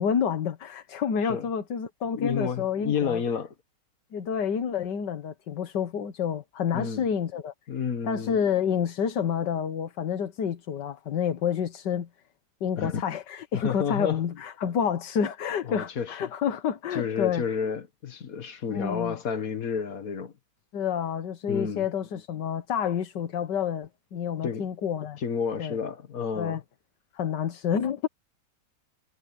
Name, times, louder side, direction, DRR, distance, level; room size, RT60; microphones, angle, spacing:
voice 1, 0.0-3.2 4.1-7.5 8.0-12.1 12.6-17.4 18.7-19.2 20.7-25.2 25.6-25.8 26.4-26.6 27.1-28.1, left 7 dB, 85° left, 1.8 m, -29 dB
voice 2, 2.1-3.5 6.7-7.0 7.7-8.4 12.8-13.0 13.5-14.2 15.6-16.3 16.9-20.3 21.5-21.9 24.4-24.7 25.2-26.6, left 6 dB, 55° left, 1.8 m, -30 dB
omnidirectional pair, 1.8 m